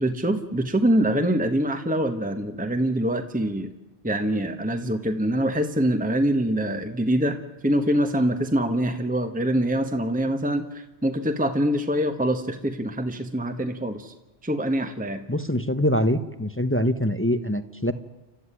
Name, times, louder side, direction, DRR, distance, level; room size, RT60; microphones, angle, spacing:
voice 1, 0.0-3.7 4.0-7.4 7.6-14.1 14.4-15.2, right 1 dB, 10° right, 7 dB, 1.2 m, -24 dB
voice 2, 15.3-17.9, equal, 10° left, 12 dB, 0.9 m, -24 dB
29.5 x 13.5 x 10.0 m, 1.1 s
omnidirectional pair, 1.1 m